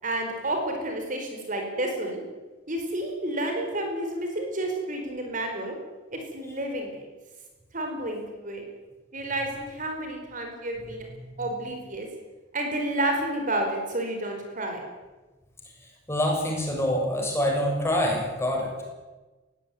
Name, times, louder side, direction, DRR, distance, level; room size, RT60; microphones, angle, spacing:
voice 1, 0.0-2.2 2.7-5.7 6.1-7.0 7.7-8.6 9.1-11.1 11.4-12.1 12.5-14.8, right 1 dB, 40° right, 3 dB, 4.7 m, -30 dB
voice 2, 16.1-18.9, left 1 dB, 15° left, 0 dB, 6.9 m, -26 dB
21.5 x 16.5 x 9.5 m, 1.2 s
head